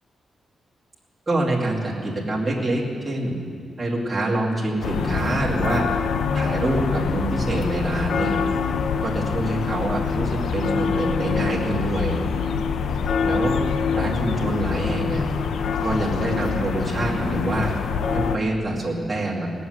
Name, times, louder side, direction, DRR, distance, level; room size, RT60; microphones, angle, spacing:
voice 1, 1.3-3.4 3.8-5.9 6.3-8.4 9.0-12.2 13.2-13.6 13.9-15.2 15.8-17.7 18.1-19.5, right 1 dB, 10° right, -7 dB, 2.4 m, -25 dB
sound 1, 4.8-18.4, left 6 dB, 75° left, 0.6 m, -25 dB
18.0 x 7.2 x 9.4 m, 2.3 s
wide cardioid pair, 170°, 0 cm